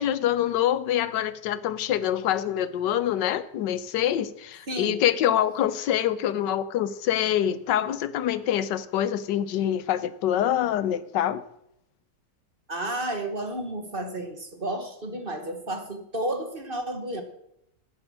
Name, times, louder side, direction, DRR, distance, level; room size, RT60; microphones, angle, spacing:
voice 1, 0.0-11.4, left 11 dB, 85° left, 1.4 m, -25 dB
voice 2, 4.7-5.0 12.7-17.2, right 1 dB, 35° right, 1.4 m, -32 dB
13.5 x 9.8 x 6.2 m
omnidirectional pair, 1.9 m